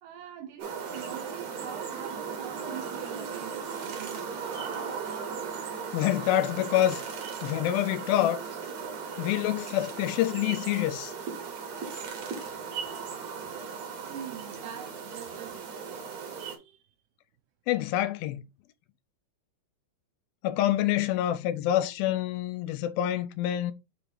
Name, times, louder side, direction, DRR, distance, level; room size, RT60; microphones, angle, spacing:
voice 1, 0.0-4.6 14.1-16.1 16.5-16.8, right 10 dB, 75° right, 2.0 m, -44 dB
sound 1, 0.6-16.6, right 6 dB, 55° right, 2.3 m, -37 dB
voice 2, 5.9-7.0 7.4-8.4 9.2-11.1 17.7-18.4 20.4-23.7, left 13 dB, 85° left, 2.5 m, -27 dB
6.8 x 3.0 x 4.7 m
omnidirectional pair, 4.2 m